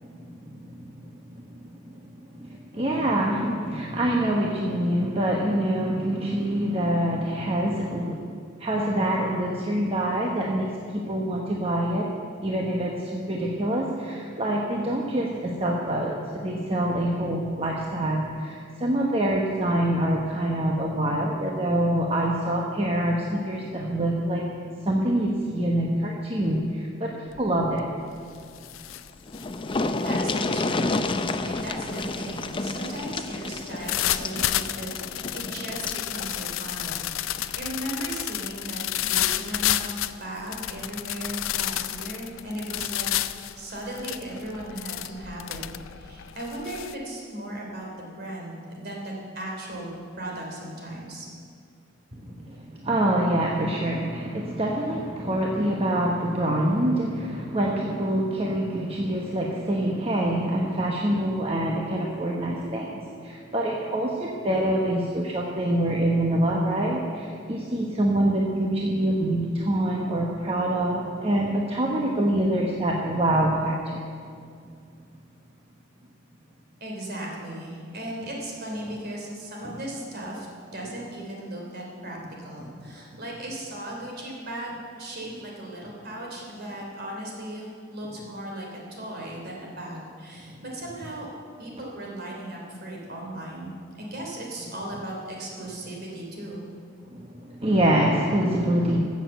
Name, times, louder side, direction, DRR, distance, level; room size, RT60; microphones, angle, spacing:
voice 1, 0.0-1.6 2.4-8.2 8.6-12.1 12.4-24.5 24.8-27.8 52.1-62.9 63.2-74.0 79.7-79.8 97.1-99.0, right 1 dB, 30° right, -2 dB, 1.1 m, -25 dB
sound 1, 27.3-27.6 28.0-46.9, left 13 dB, 85° left, 0.5 m, -31 dB
sound 2, 29.0-29.1 29.3-36.1 37.4-37.5 37.9-38.0, left 2 dB, 25° left, 0.5 m, -30 dB
voice 2, 30.0-36.9 37.2-43.1 43.5-45.6 45.9-49.9 50.2-51.3 76.8-80.5 80.7-91.3 91.6-96.6, right 1 dB, 50° right, -1 dB, 3.2 m, -37 dB
14.5 x 7.3 x 8.0 m, 2.3 s
head